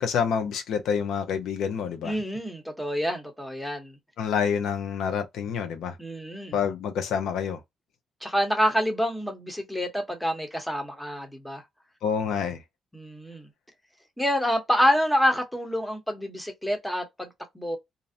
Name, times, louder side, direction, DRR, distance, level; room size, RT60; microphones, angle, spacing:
voice 1, 0.0-2.2 4.2-6.0 6.5-7.6 12.0-12.6, left 7 dB, 80° left, 0.5 m, -27 dB
voice 2, 2.0-4.0 6.0-6.6 8.2-11.6 12.9-13.5 14.2-17.3 17.5-17.8, equal, 5° left, 0.8 m, -27 dB
2.5 x 2.0 x 2.5 m
cardioid pair, 90°, 0 cm